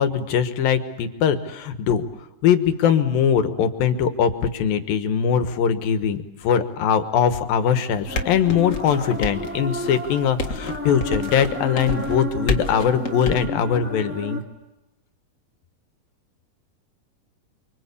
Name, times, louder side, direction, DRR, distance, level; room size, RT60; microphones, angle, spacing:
voice 1, 0.0-2.0 2.4-14.4, left 8 dB, 90° left, 9 dB, 3.1 m, -21 dB
sound 1, 7.9-13.4, left 3 dB, 45° left, 1.0 m, -30 dB
sound 2, 8.1-14.4, equal, 5° right, 0.9 m, -32 dB
29.5 x 23.5 x 8.4 m, 0.96 s
omnidirectional pair, 4.0 m